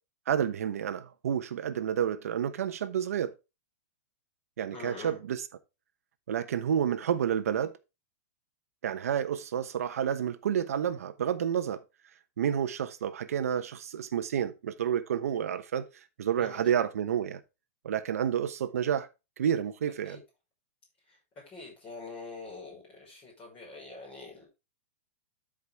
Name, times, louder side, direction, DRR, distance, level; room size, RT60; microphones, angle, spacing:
voice 1, 0.3-3.3 4.6-5.5 6.3-7.7 8.8-11.8 12.4-15.9 16.2-17.4 17.8-19.1 19.4-20.2, right 9 dB, 75° right, 1.0 m, -30 dB
voice 2, 4.7-5.2 16.4-16.7 20.1-20.2 21.5-24.5, left 3 dB, 15° left, 5.5 m, -45 dB
13.0 x 5.1 x 3.6 m
supercardioid pair, 180°, 8 cm